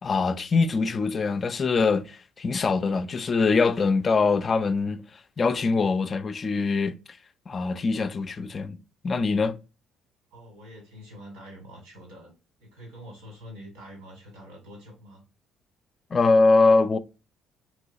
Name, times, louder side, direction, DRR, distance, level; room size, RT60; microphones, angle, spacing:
voice 1, 0.0-5.0 5.4-7.0 7.5-8.8 9.0-9.6 16.1-17.0, left 4 dB, 40° left, 0.4 m, -23 dB
voice 2, 10.3-12.3 12.6-15.2, equal, 90° right, 1.9 m, -45 dB
3.0 x 3.0 x 2.6 m
supercardioid pair, 65°, 0 cm